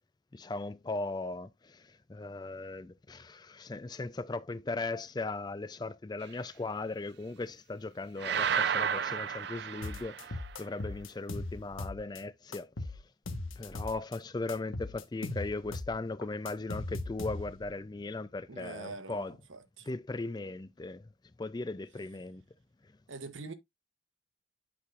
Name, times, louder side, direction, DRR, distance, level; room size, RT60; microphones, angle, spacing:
voice 1, 0.3-13.0 13.6-19.4 19.8-21.1 21.4-22.4 22.8-22.9, left 3 dB, 20° left, 0.3 m, -38 dB
sound 1, 8.2-10.5, right 7 dB, 55° right, 0.4 m, -32 dB
sound 2, 9.8-12.2 12.5-14.2 14.5-17.7, left 2 dB, 85° left, 1.3 m, -39 dB
voice 2, 18.5-19.9 23.1-23.5, right 3 dB, 80° right, 1.1 m, -44 dB
8.4 x 6.1 x 2.5 m
head